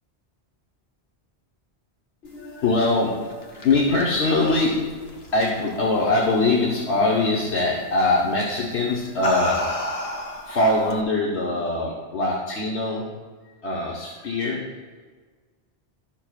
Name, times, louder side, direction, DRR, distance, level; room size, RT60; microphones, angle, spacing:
voice 1, 2.2-9.8 10.4-13.2 13.6-14.7, left 2 dB, 80° left, -4 dB, 1.3 m, -23 dB
sound 1, 3.1-6.0 6.4-6.8 8.0-8.3 8.9-11.0, left 1 dB, 40° left, 0.9 m, -31 dB
13.5 x 5.6 x 2.4 m, 1.5 s
omnidirectional pair, 1.1 m